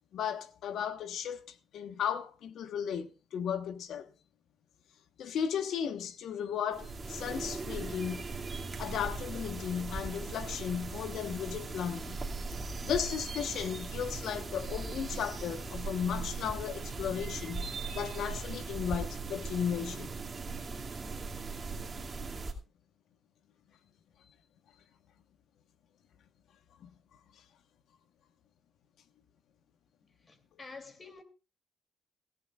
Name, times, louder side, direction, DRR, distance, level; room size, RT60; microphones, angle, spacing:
voice 1, 0.1-4.1 5.2-8.3 8.8-12.2 12.8-20.1 26.8-26.9, left 8 dB, 75° left, 1.2 m, -35 dB
sound 1, 6.7-22.5, right 3 dB, 30° right, 2.4 m, -39 dB
voice 2, 30.2-31.2, left 4 dB, 35° left, 2.9 m, -48 dB
17.0 x 16.0 x 2.4 m
cardioid pair, 90°, 0 cm